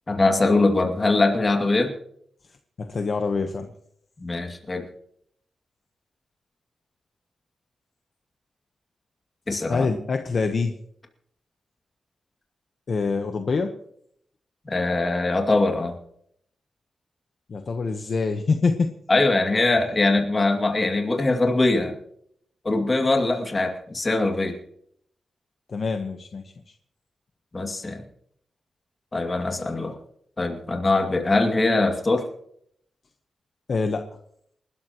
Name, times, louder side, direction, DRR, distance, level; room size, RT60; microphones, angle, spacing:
voice 1, 0.1-1.9 4.2-4.8 9.5-9.9 14.7-15.9 19.1-21.9 22.6-24.6 27.5-28.0 29.1-29.9 30.4-32.2, left 2 dB, 25° left, 2 dB, 2.4 m, -22 dB
voice 2, 2.8-3.7 9.7-10.8 12.9-13.7 17.5-18.9 25.7-26.5 33.7-34.1, left 4 dB, 45° left, 5 dB, 1.0 m, -25 dB
28.0 x 12.5 x 3.0 m, 0.68 s
wide cardioid pair, 170°, 0 cm